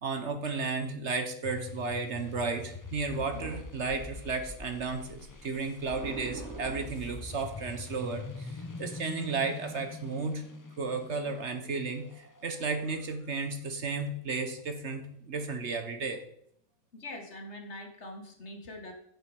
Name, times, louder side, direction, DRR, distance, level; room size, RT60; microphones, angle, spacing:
voice 1, 0.0-10.4 10.8-16.2, right 4 dB, 55° right, 7 dB, 1.3 m, -33 dB
sound 1, 1.4-13.9, left 3 dB, 20° left, 0.6 m, -44 dB
voice 2, 16.9-18.9, left 1 dB, 55° left, 4 dB, 1.9 m, -43 dB
8.7 x 7.5 x 4.9 m, 0.69 s
omnidirectional pair, 1.4 m